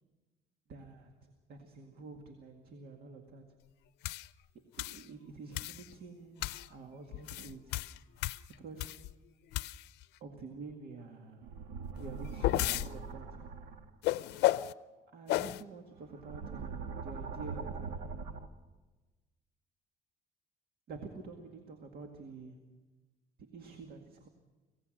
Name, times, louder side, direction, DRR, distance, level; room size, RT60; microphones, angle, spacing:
voice 1, 0.7-3.6 4.5-7.8 8.5-9.1 10.2-11.5 12.0-13.5 15.1-18.2 20.9-22.8 23.4-24.3, right 4 dB, 65° right, 5 dB, 2.1 m, -48 dB
sound 1, 4.0-4.3 4.8-5.0 5.5-5.9 6.4-6.7 7.1-9.1 9.5-10.0 12.0-12.9 14.0-14.7 15.3-15.6, left 16 dB, 80° left, 0.6 m, -33 dB
sound 2, 11.4-13.9 15.9-18.5, right 5 dB, 80° right, 1.5 m, -42 dB
25.5 x 17.5 x 6.5 m, 1.2 s
cardioid pair, 110°, 17 cm